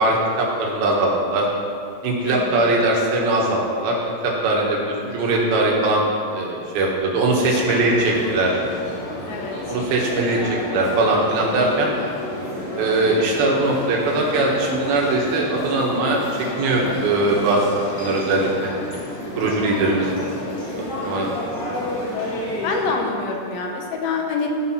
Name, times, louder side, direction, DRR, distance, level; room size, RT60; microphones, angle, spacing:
voice 1, 0.0-1.5 2.0-3.9 4.2-6.0 6.3-8.5 9.7-11.9 12.8-16.2 16.6-17.6 18.0-18.7 19.4-20.2 21.0-21.3, right 2 dB, 75° right, -2 dB, 3.4 m, -20 dB
voice 2, 2.2-2.8 7.4-8.1 9.3-9.8 22.6-24.5, left 5 dB, 75° left, 1 dB, 2.7 m, -27 dB
sound 1, 7.3-22.9, left 1 dB, 45° left, 2.7 m, -30 dB
15.0 x 5.4 x 5.8 m, 2.4 s
omnidirectional pair, 4.4 m